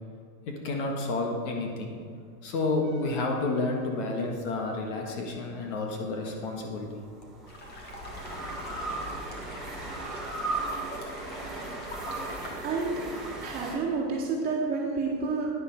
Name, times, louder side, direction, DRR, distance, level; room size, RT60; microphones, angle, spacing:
voice 1, 0.5-1.9 2.4-6.9, left 2 dB, 50° left, 2 dB, 1.7 m, -30 dB
sound 1, 2.8-4.4 6.2-13.8, right 2 dB, ahead, 0.4 m, -37 dB
sound 2, 7.5-12.5, left 1 dB, 20° left, 1.6 m, -43 dB
voice 2, 12.6-13.0 13.4-15.5, right 4 dB, 20° right, -5 dB, 2.3 m, -29 dB
9.9 x 9.8 x 4.6 m, 2.2 s
supercardioid pair, 160°, 48 cm